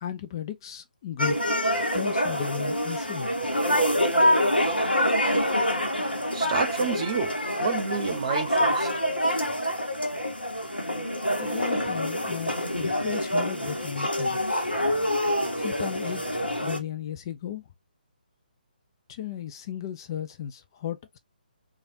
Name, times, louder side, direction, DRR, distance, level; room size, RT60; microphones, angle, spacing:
voice 1, 0.0-1.4 1.9-3.3 11.4-14.7 15.6-16.2 16.6-17.6 19.1-21.2, left 9 dB, 30° left, 0.3 m, -35 dB
sound 1, 1.2-16.8, equal, 90° left, 0.9 m, -26 dB
voice 2, 6.3-7.3 7.6-8.9, right 5 dB, 40° right, 0.8 m, -29 dB
3.2 x 2.3 x 2.5 m
figure-of-eight pair, 140°, 5 cm